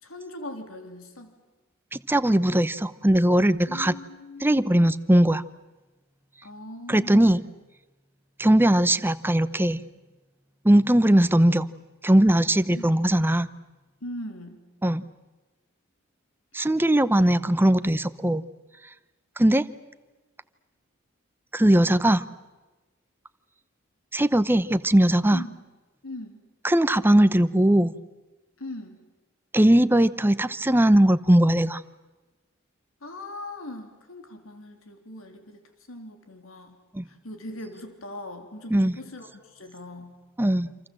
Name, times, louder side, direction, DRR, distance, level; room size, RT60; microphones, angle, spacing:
voice 1, 0.0-1.3 3.7-4.6 6.4-7.3 12.6-13.1 14.0-14.6 17.0-17.1 25.3-25.6 26.0-26.4 28.6-29.0 33.0-35.6 35.9-36.8 37.0-40.2, left 1 dB, 90° left, 6 dB, 3.2 m, -40 dB
voice 2, 1.9-3.9 4.4-5.4 6.9-7.4 8.4-9.8 10.6-11.7 12.0-13.5 14.8-15.0 16.5-18.4 19.4-19.6 21.5-22.2 24.1-25.4 26.6-27.9 29.5-31.8 36.9-37.0 38.7-39.0 40.4-40.7, right 1 dB, 10° right, 14 dB, 0.8 m, -20 dB
28.0 x 27.0 x 7.7 m, 1.2 s
head